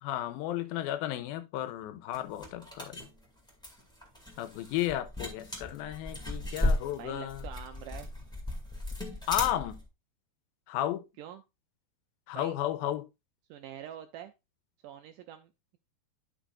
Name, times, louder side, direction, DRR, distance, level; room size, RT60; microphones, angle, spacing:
voice 1, 0.0-3.0 4.4-7.4 9.3-9.8 10.7-11.0 12.3-13.0, left 13 dB, 90° left, 2.5 m, -33 dB
sound 1, 2.1-9.8, left 1 dB, ahead, 1.1 m, -35 dB
voice 2, 7.0-8.1 11.2-11.4 12.3-12.5 13.5-14.3 14.8-15.8, right 10 dB, 85° right, 1.9 m, -45 dB
11.5 x 6.0 x 2.5 m
omnidirectional pair, 4.2 m